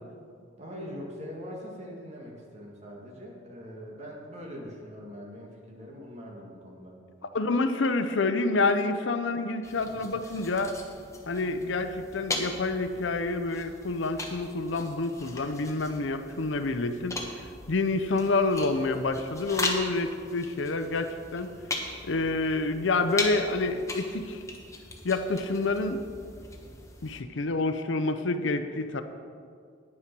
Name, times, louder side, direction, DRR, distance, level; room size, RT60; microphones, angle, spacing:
voice 1, 0.6-6.9 9.8-10.0, equal, 35° right, -1 dB, 2.0 m, -42 dB
voice 2, 7.3-10.7 11.3-17.2 17.7-21.5 22.0-24.4 25.0-26.0 27.0-29.0, left 3 dB, 70° left, 9 dB, 0.6 m, -28 dB
sound 1, 9.6-27.2, left 2 dB, 15° left, 1.1 m, -39 dB
9.5 x 8.7 x 6.1 m, 2.3 s
head